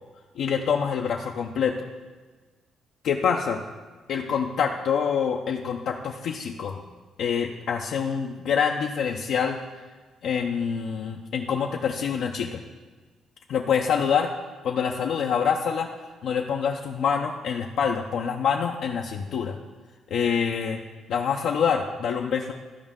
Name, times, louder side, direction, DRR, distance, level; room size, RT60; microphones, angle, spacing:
voice 1, 0.4-1.7 3.0-3.6 4.1-6.8 7.2-9.6 10.2-12.6 13.5-14.3 14.6-15.9 16.2-19.6 20.1-20.8 21.1-22.5, left 7 dB, 75° left, 1 dB, 0.6 m, -26 dB
13.5 x 5.2 x 3.7 m, 1.3 s
cardioid pair, 90°, 0 cm